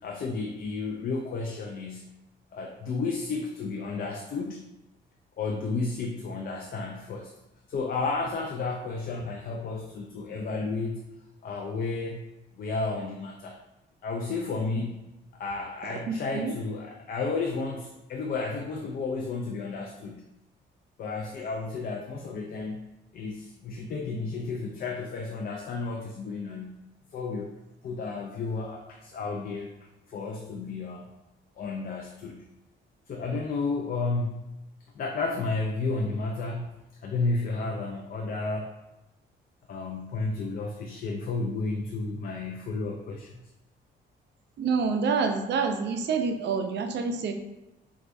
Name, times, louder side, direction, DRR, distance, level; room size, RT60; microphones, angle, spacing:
voice 1, 0.0-2.1 2.5-4.7 5.4-7.3 7.7-11.1 11.4-12.3 12.6-13.6 14.0-15.0 15.3-20.3 21.0-22.8 23.1-26.9 27.1-27.5 27.8-29.7 30.1-31.1 31.6-32.5 33.1-34.6 34.9-38.7 39.7-43.4, left 3 dB, 50° left, 2 dB, 0.4 m, -32 dB
voice 2, 44.6-47.3, right 5 dB, 60° right, 5 dB, 0.5 m, -27 dB
4.4 x 2.3 x 2.5 m, 0.95 s
cardioid pair, 90°, 20 cm